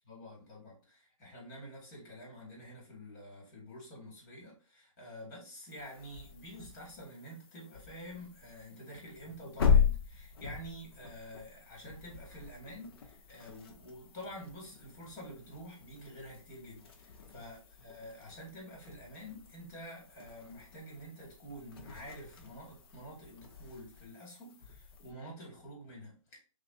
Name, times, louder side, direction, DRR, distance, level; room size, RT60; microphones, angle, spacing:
voice 1, 0.1-26.4, equal, 30° left, -1 dB, 2.0 m, -48 dB
sound 1, 5.7-25.1, left 7 dB, 45° left, 0.7 m, -38 dB
5.8 x 2.5 x 2.4 m, 0.36 s
hypercardioid pair, 145°, 18 cm